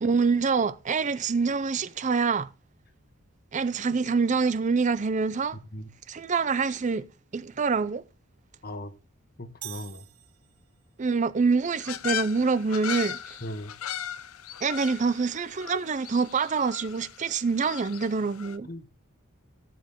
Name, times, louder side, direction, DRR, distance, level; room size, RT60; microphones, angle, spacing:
voice 1, 0.0-2.5 3.5-5.6 6.1-7.1 7.3-8.0 11.0-13.2 14.6-18.7, right 4 dB, 35° right, 0.5 m, -26 dB
voice 2, 9.4-10.0 13.4-13.7 18.6-18.9, left 1 dB, 45° left, 1.3 m, -38 dB
sound 1, 9.6-11.0, right 14 dB, 85° right, 0.7 m, -44 dB
sound 2, 11.8-18.6, left 10 dB, 90° left, 0.7 m, -37 dB
16.5 x 7.5 x 3.6 m
head